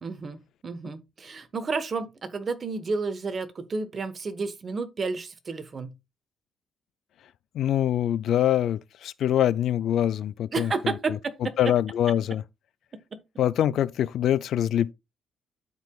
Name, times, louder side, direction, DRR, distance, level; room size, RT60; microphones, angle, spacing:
voice 1, 0.0-5.9 10.5-11.5, right 4 dB, 40° right, 1.1 m, -31 dB
voice 2, 7.5-11.0 11.6-12.4 13.4-14.9, left 11 dB, 75° left, 0.4 m, -24 dB
12.5 x 4.8 x 2.3 m
cardioid pair, 90°, 0 cm